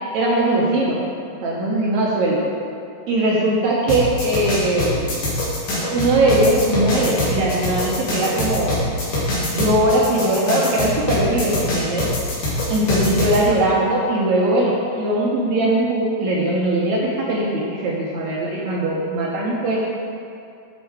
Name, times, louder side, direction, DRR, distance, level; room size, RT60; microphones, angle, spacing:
voice 1, 0.0-1.0 1.4-2.5 3.1-5.2 5.9-8.7 9.1-9.2 9.5-12.1 12.7-19.8, right 1 dB, 75° right, -4 dB, 1.7 m, -20 dB
sound 1, 3.9-13.4, left 1 dB, 85° left, 3.8 m, -23 dB
8.2 x 5.2 x 4.7 m, 2.4 s
omnidirectional pair, 4.2 m